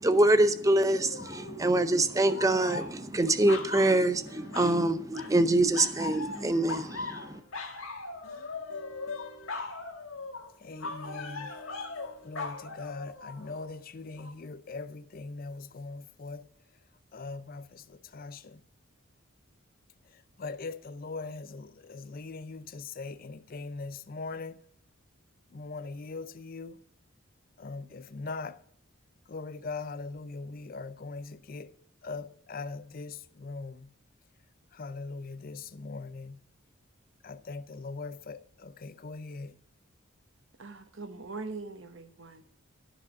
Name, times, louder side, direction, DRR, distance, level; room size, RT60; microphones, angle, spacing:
voice 1, 0.0-7.4, right 1 dB, 15° right, 0.6 m, -25 dB
sound 1, 0.9-1.7 2.1-4.8 5.1-5.5 5.7-13.7 14.2-14.3, left 3 dB, 85° left, 1.8 m, -39 dB
voice 2, 10.6-11.5 12.2-16.5 17.1-18.6 20.4-24.6 25.5-26.8 27.6-28.6 29.3-31.7 32.0-33.9 34.7-36.4 37.2-39.5, left 3 dB, 45° left, 0.5 m, -40 dB
voice 3, 40.6-42.4, right 3 dB, 65° right, 1.1 m, -41 dB
13.5 x 4.9 x 6.9 m
head